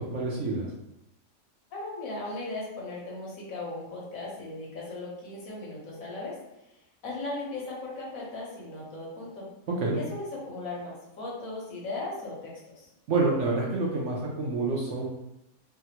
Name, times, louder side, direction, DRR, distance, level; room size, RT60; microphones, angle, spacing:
voice 1, 0.1-0.7 9.8-10.0 13.1-15.1, right 3 dB, 65° right, -3 dB, 0.8 m, -27 dB
voice 2, 1.7-6.4 7.0-9.5 10.0-12.9, left 2 dB, 60° left, -5 dB, 1.3 m, -37 dB
3.5 x 2.1 x 2.8 m, 0.87 s
omnidirectional pair, 1.7 m